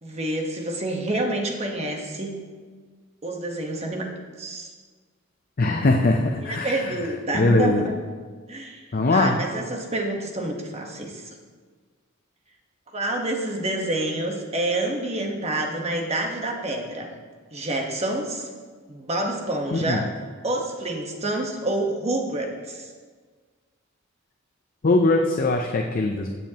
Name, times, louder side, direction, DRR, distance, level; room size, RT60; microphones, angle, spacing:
voice 1, 0.0-2.3 3.2-4.1 4.4-4.7 6.4-8.0 8.5-8.8 9.1-11.3 12.9-17.1 17.5-18.5 18.9-20.1 20.4-22.9, right 1 dB, 30° right, 2 dB, 1.2 m, -28 dB
voice 2, 5.6-6.9 7.3-7.8 8.9-9.4 19.7-20.0 24.8-26.3, left 2 dB, 45° left, 3 dB, 0.6 m, -21 dB
16.5 x 7.3 x 2.9 m, 1.5 s
head